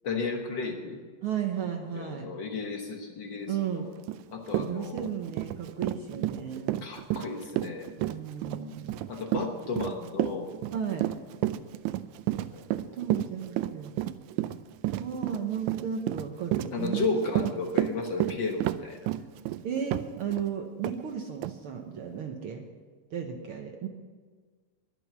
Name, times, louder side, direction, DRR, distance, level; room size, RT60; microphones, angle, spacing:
voice 1, 0.0-1.0 1.9-3.9 4.3-5.1 6.8-7.9 9.1-10.5 12.5-13.0 16.7-19.1, left 4 dB, 65° left, 3 dB, 1.1 m, -33 dB
voice 2, 1.2-2.3 3.5-3.9 4.6-6.8 8.0-9.0 10.7-11.1 12.7-13.9 15.0-17.2 19.6-22.6 23.1-23.9, right 8 dB, 70° right, 3 dB, 1.3 m, -34 dB
Run, 4.1-4.2 4.5-20.5 20.8-21.0 21.4-21.5, right 15 dB, 85° right, 1.7 m, -31 dB
22.0 x 7.8 x 6.1 m, 1.5 s
omnidirectional pair, 3.9 m